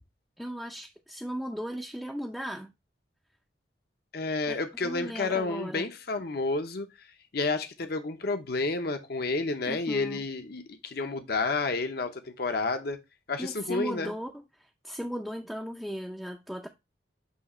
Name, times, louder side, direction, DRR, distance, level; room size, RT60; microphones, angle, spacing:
voice 1, 0.4-2.7 4.5-5.9 9.6-10.2 13.4-16.7, equal, ahead, 0.5 m, -37 dB
voice 2, 4.1-6.9 7.3-13.0 13.3-14.1, left 3 dB, 60° left, 0.8 m, -30 dB
8.3 x 2.9 x 4.2 m
head